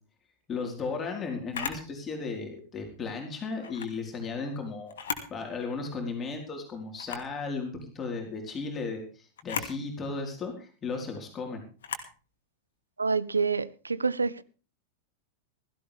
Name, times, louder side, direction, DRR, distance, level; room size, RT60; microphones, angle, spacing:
voice 1, 0.5-4.9 5.3-11.6, left 4 dB, 25° left, 4.4 m, -35 dB
Camera, 1.5-1.9 3.6-3.9 4.9-5.3 5.8-5.9 7.0-7.3 9.4-9.8 11.8-12.1, left 7 dB, 65° left, 2.6 m, -35 dB
voice 2, 13.0-14.4, right 4 dB, 80° right, 0.7 m, -27 dB
16.5 x 15.5 x 3.5 m
figure-of-eight pair, 90°, 0 cm